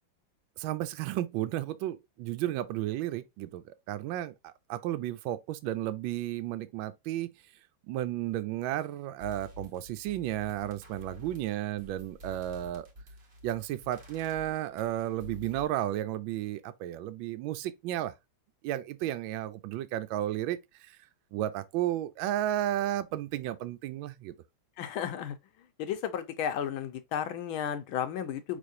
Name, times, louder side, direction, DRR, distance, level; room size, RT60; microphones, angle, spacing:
voice 1, 0.6-7.3 7.9-12.9 13.4-18.1 18.6-21.0 21.3-24.3, right 13 dB, 75° right, 1.3 m, -33 dB
sound 1, 8.8-8.9 9.2-15.6, left 1 dB, 40° right, 1.0 m, -49 dB
voice 2, 24.8-25.4 25.8-28.6, left 9 dB, 80° left, 1.5 m, -33 dB
5.1 x 3.6 x 2.6 m
omnidirectional pair, 2.3 m